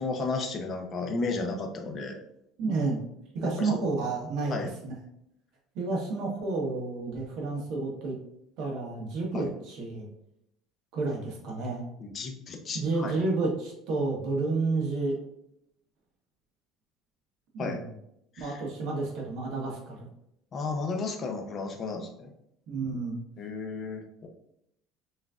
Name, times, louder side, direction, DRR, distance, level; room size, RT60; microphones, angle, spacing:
voice 1, 0.0-2.2 3.6-3.7 4.5-4.7 9.3-9.5 12.0-13.1 17.6-17.8 18.3-18.6 20.5-22.3 23.4-24.3, left 3 dB, 30° left, 3 dB, 0.5 m, -33 dB
voice 2, 2.6-3.0 3.3-4.9 5.7-8.1 8.6-10.1 10.9-11.8 12.7-15.2 17.5-17.9 18.4-20.1 22.7-23.2, right 3 dB, 55° right, -1 dB, 0.9 m, -30 dB
5.9 x 2.5 x 2.3 m, 0.78 s
cardioid pair, 165°, 0 cm